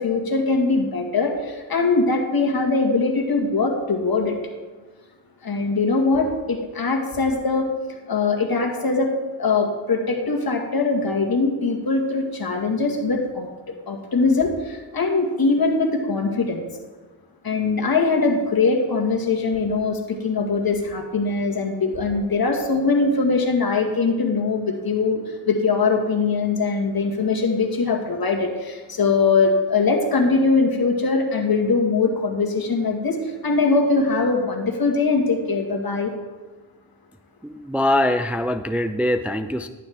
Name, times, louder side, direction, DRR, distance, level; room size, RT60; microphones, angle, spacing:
voice 1, 0.0-4.4 5.4-7.7 8.1-9.1 9.4-13.5 13.9-16.6 17.4-36.1, left 4 dB, 55° left, 2 dB, 1.8 m, -21 dB
voice 2, 37.4-39.7, left 1 dB, 5° right, 8 dB, 0.4 m, -23 dB
11.5 x 9.5 x 3.5 m, 1.3 s
cardioid pair, 50°, 43 cm